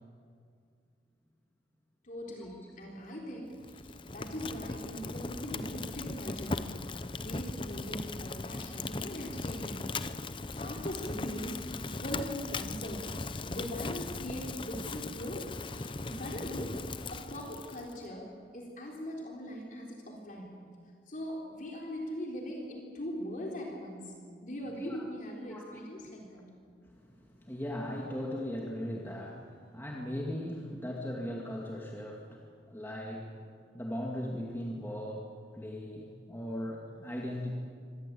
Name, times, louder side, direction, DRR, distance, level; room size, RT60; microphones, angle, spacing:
voice 1, 2.0-10.0 10.5-18.3 18.5-20.5 21.1-24.1 24.4-26.5, equal, 45° left, -1 dB, 3.7 m, -41 dB
Fire, 3.6-18.0, left 3 dB, 30° left, 0.7 m, -39 dB
voice 2, 27.0-32.4 32.7-33.3 33.7-37.5, equal, 15° left, -2 dB, 2.2 m, -38 dB
25.0 x 19.5 x 8.6 m, 2.2 s
head